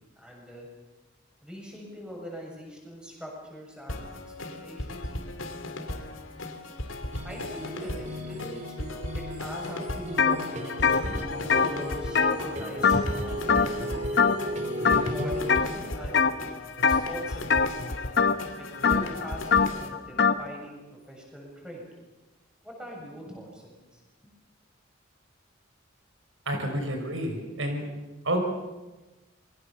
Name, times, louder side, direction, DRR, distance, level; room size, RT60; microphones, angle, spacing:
voice 1, 0.2-0.7 1.4-4.1 4.4-5.0 7.2-8.6 9.1-14.0 14.8-16.3 16.8-17.8 18.6-21.8 22.6-24.0 26.5-26.6, equal, 5° right, -1 dB, 7.2 m, -42 dB
sound 1, 3.9-19.9, left 1 dB, 85° left, 2.8 m, -37 dB
sound 2, 7.1-15.6, equal, 35° right, 2.9 m, -35 dB
sound 3, 10.2-10.4 10.7-13.2 13.5-13.9 14.2-14.5 14.8-15.7 16.1-16.5 16.8-20.4, left 5 dB, 60° left, 1.2 m, -23 dB
voice 2, 26.5-27.9 28.2-28.4, right 1 dB, 85° right, 4 dB, 5.4 m, -29 dB
27.5 x 22.5 x 7.0 m, 1.1 s
head